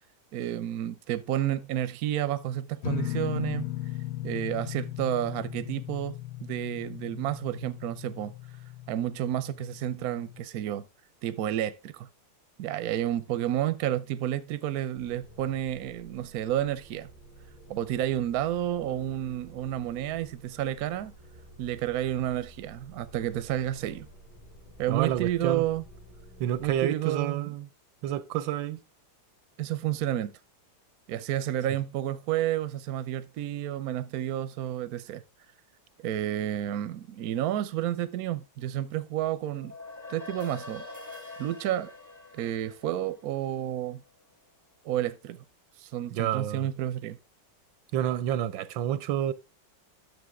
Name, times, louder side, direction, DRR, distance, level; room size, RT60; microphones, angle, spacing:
voice 1, 0.3-3.7 4.2-8.3 8.9-10.8 11.2-12.1 12.6-17.1 17.7-21.1 21.6-24.1 24.8-25.8 26.6-27.5 29.6-30.4 31.1-35.2 36.0-39.7 40.1-40.8 41.4-41.9 42.3-44.0 44.8-45.4 45.8-47.2, right 12 dB, 65° right, 1.1 m, -30 dB
sound 1, 2.8-10.4, left 15 dB, 65° left, 1.3 m, -37 dB
sound 2, 15.0-26.8, right 1 dB, 85° left, 7.0 m, -52 dB
voice 2, 24.9-25.6 26.4-27.7 28.0-28.8 46.1-46.7 47.9-49.3, right 11 dB, 85° right, 1.5 m, -29 dB
sound 3, 39.5-44.1, left 3 dB, 10° left, 1.1 m, -44 dB
11.0 x 6.9 x 3.5 m
omnidirectional pair, 2.0 m